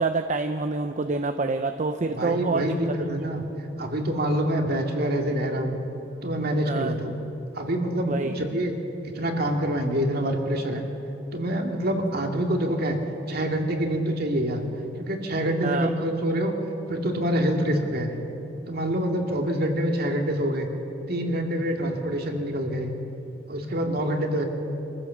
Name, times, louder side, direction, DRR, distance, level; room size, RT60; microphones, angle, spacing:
voice 1, 0.0-2.8 6.7-6.9 8.1-8.4 15.6-15.9, right 3 dB, 40° right, 8 dB, 0.7 m, -26 dB
voice 2, 2.1-3.4 3.8-5.8 6.2-7.1 7.5-8.7 9.0-10.8 11.3-13.0 13.3-14.6 15.0-16.5 16.9-18.1 18.7-20.7 21.1-23.0 23.5-24.5, right 1 dB, 55° right, 3 dB, 2.3 m, -26 dB
25.5 x 15.0 x 7.2 m, 2.9 s
head